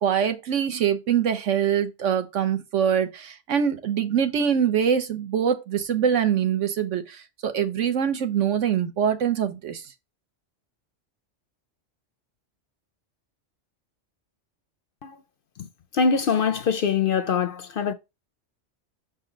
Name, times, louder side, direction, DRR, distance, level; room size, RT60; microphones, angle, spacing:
voice 1, 0.0-9.8, right 8 dB, 85° right, 1.2 m, -24 dB
voice 2, 15.9-17.9, left 6 dB, 60° left, 0.6 m, -23 dB
6.3 x 4.1 x 3.9 m
omnidirectional pair, 1.2 m